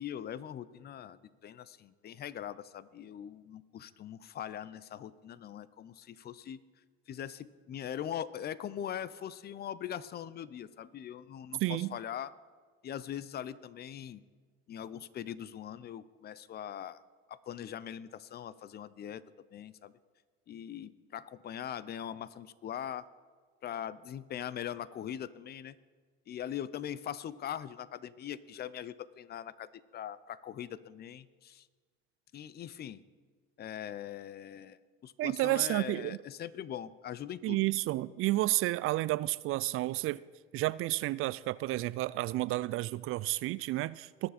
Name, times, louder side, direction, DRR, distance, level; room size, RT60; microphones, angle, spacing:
voice 1, 0.0-6.6 7.1-12.3 12.8-14.2 14.7-17.0 17.3-19.2 19.5-19.9 20.5-23.1 23.6-25.8 26.3-31.7 32.3-33.0 33.6-37.6, left 10 dB, 30° left, 0.6 m, -41 dB
voice 2, 11.6-12.0 35.2-36.2 37.4-40.2 40.5-44.3, right 17 dB, 45° right, 0.4 m, -31 dB
20.0 x 6.9 x 4.3 m
supercardioid pair, 90°, 31 cm